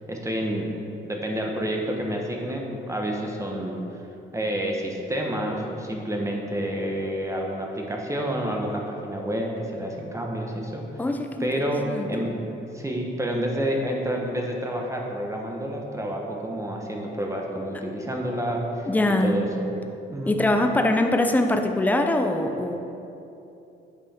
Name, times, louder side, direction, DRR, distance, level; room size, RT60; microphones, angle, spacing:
voice 1, 0.1-0.7 1.0-3.8 4.3-11.0 11.4-12.3 12.7-18.9 19.2-19.5 20.1-20.3, equal, 15° right, 0 dB, 1.0 m, -29 dB
voice 2, 11.0-11.5 11.9-12.1 18.9-19.4 20.3-22.8, left 1 dB, 10° left, 5 dB, 0.6 m, -22 dB
8.5 x 5.5 x 4.3 m, 2.9 s
cardioid pair, 90°, 20 cm